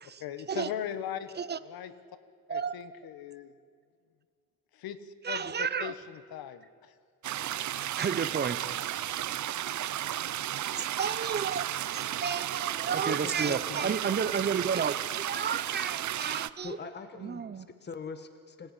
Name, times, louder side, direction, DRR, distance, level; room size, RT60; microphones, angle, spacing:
voice 1, 0.2-1.3 1.6-1.9 2.5-3.5 4.7-6.9, left 10 dB, 80° left, 12 dB, 1.4 m, -39 dB
voice 2, 2.5-2.9 5.2-5.9 8.0-8.6 10.7-11.7 11.9-16.8 17.2-17.7, right 6 dB, 30° right, 13 dB, 0.9 m, -32 dB
sound 1, 7.2-16.5, right 12 dB, 55° right, 0.7 m, -33 dB
voice 3, 13.1-14.0 16.6-18.7, left 4 dB, 30° left, 9 dB, 1.4 m, -42 dB
25.5 x 17.5 x 9.9 m, 2.3 s
cardioid pair, 130°, 35 cm